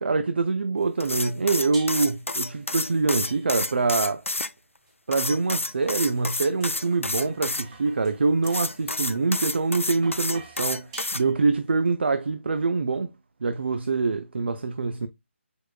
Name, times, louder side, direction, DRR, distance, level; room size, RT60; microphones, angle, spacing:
voice 1, 0.0-4.2 5.1-10.9 11.1-13.1 13.4-15.1, right 4 dB, 55° right, 0.4 m, -25 dB
sound 1, 1.0-4.5 5.1-7.6 8.4-11.2, left 2 dB, 85° left, 0.4 m, -29 dB
sound 2, 1.7-2.3 3.2-3.9 4.9-11.7, right 4 dB, 25° right, 0.9 m, -49 dB
4.7 x 4.5 x 2.3 m
figure-of-eight pair, 150°, 7 cm